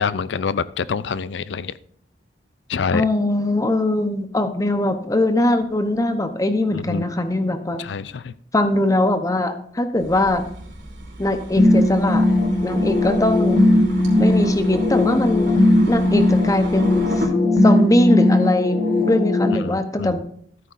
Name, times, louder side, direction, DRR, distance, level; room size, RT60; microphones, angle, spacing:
voice 1, 0.0-1.7 2.7-3.0 6.7-7.0 7.8-8.3 19.5-20.1, left 5 dB, 85° left, 17 dB, 0.4 m, -26 dB
voice 2, 2.9-7.8 8.5-10.4 11.2-12.3 12.6-13.6 14.2-15.5 15.9-17.1 17.6-20.2, left 1 dB, 20° left, 8 dB, 0.8 m, -21 dB
sound 1, 10.0-17.3, right 1 dB, 75° right, 3.2 m, -35 dB
sound 2, 11.6-19.6, left 1 dB, 60° left, 1.4 m, -18 dB
14.0 x 8.6 x 2.6 m, 0.62 s
head